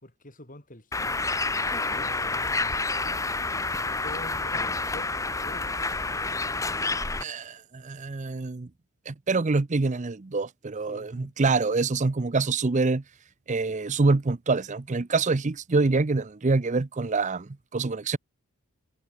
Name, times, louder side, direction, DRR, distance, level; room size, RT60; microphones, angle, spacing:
voice 1, 0.0-1.4 1.9-3.3 4.0-5.1 5.4-5.8 10.9-11.3 11.8-12.0, left 1 dB, 35° left, 5.8 m, -46 dB
Bird, 0.9-7.2, left 3 dB, 15° left, 1.0 m, -29 dB
voice 2, 7.2-8.7 9.1-13.0 13.5-18.2, right 3 dB, 35° right, 0.6 m, -26 dB
head